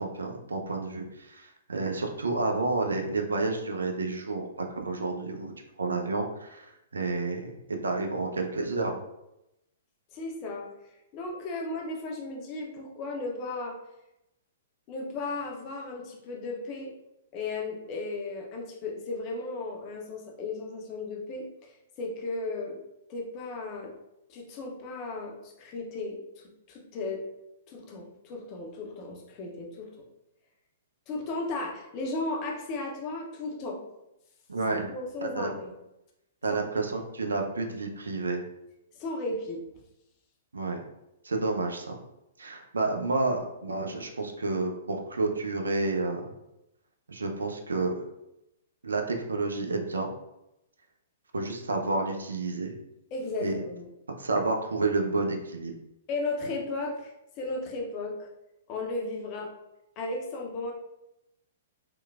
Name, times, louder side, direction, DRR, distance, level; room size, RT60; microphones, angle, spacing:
voice 1, 0.0-5.5 5.8-9.0 34.5-34.9 35.2-35.5 36.4-38.4 40.5-40.8 41.2-42.0 42.4-46.2 47.1-48.0 48.8-50.1 51.3-52.8 53.4-53.5 54.2-55.7, right 3 dB, 70° right, 3 dB, 0.3 m, -30 dB
voice 2, 10.1-10.7 11.1-13.8 14.9-16.9 17.3-22.8 23.1-23.9 24.3-27.2 27.7-29.9 31.1-33.8 34.7-35.7 36.5-36.6 39.0-39.6 53.1-53.9 56.1-57.1 57.4-58.3 58.7-59.5 60.0-60.7, left 2 dB, 35° left, 1 dB, 0.5 m, -35 dB
3.0 x 2.1 x 2.3 m, 0.88 s
figure-of-eight pair, 110°, 0 cm